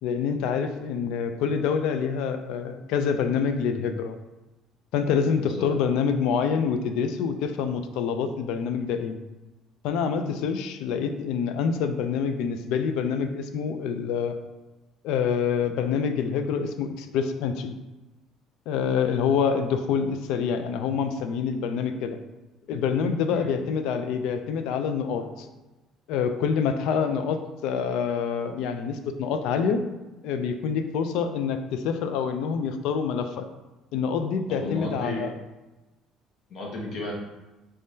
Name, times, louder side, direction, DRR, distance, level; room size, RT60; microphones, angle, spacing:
voice 1, 0.0-4.2 4.9-9.1 9.8-14.3 15.0-17.8 18.7-22.2 22.7-25.5 26.1-29.8 30.2-33.5 33.9-35.3, left 6 dB, 75° left, 8 dB, 0.3 m, -26 dB
voice 2, 5.4-5.7 23.3-23.5 34.5-35.3 36.5-37.1, left 2 dB, 50° left, -1 dB, 0.9 m, -33 dB
3.5 x 3.2 x 2.7 m, 1.1 s
cardioid pair, 140°, 0 cm